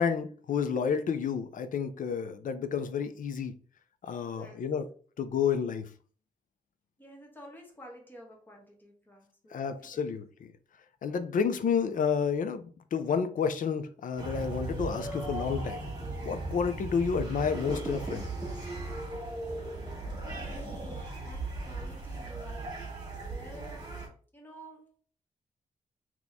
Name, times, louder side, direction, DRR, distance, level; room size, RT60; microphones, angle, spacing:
voice 1, 0.0-3.5 4.0-4.9 5.2-5.9 9.5-10.5 11.0-15.9 16.2-18.3, left 6 dB, 65° left, 0.5 m, -30 dB
voice 2, 4.1-4.6 7.0-10.0 20.2-24.0 24.3-25.0, right 1 dB, 15° left, 1.3 m, -50 dB
sound 1, 14.2-24.1, right 2 dB, 25° right, 1.9 m, -37 dB
4.0 x 3.0 x 3.5 m
wide cardioid pair, 125°, 15 cm